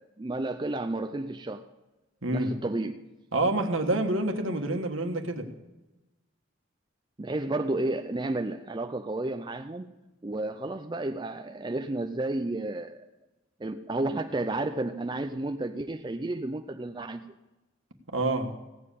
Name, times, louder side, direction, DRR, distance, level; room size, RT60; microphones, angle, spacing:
voice 1, 0.0-1.7 2.3-3.0 7.2-9.9 10.2-13.1 13.6-17.2, right 2 dB, 20° right, 7 dB, 0.4 m, -32 dB
voice 2, 2.2-2.5 3.3-5.5 18.1-18.5, right 2 dB, 70° right, 5 dB, 1.4 m, -27 dB
16.0 x 7.4 x 8.4 m, 1.0 s
head